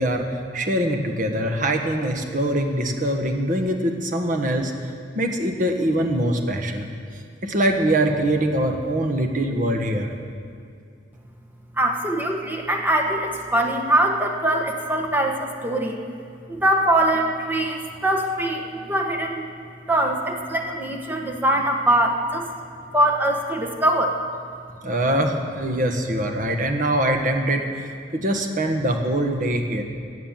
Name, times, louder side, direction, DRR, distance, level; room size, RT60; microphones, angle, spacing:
voice 1, 0.0-6.9 7.4-10.1 24.8-29.8, right 1 dB, 45° right, 4 dB, 1.5 m, -23 dB
voice 2, 11.8-16.0 16.5-19.5 19.9-22.5 22.9-24.2, right 1 dB, 10° right, 2 dB, 1.2 m, -22 dB
16.5 x 8.5 x 7.5 m, 2.5 s
head